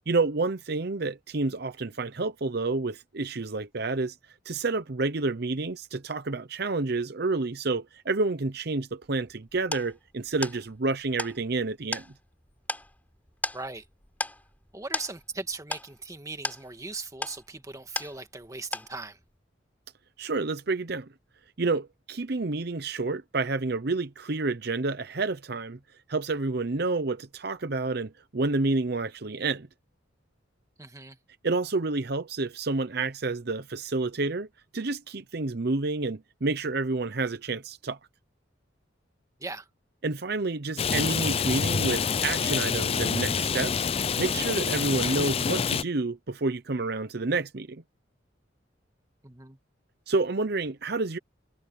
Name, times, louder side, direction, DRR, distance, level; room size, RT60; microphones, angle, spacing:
voice 1, 0.1-4.2 4.4-12.0 20.2-21.1 21.6-25.8 26.1-29.7 31.4-34.5 34.7-38.0 40.0-47.8 50.1-51.2, right 3 dB, 55° right, 0.8 m, -29 dB
sound 1, 9.0-18.5 18.7-19.3, left 2 dB, 10° left, 6.3 m, -37 dB
voice 2, 13.5-13.9 14.7-19.2 30.8-31.2 39.4-39.7 49.2-49.6, right 3 dB, 15° right, 1.6 m, -39 dB
Rain, 40.8-45.8, left 6 dB, 30° left, 0.4 m, -27 dB
head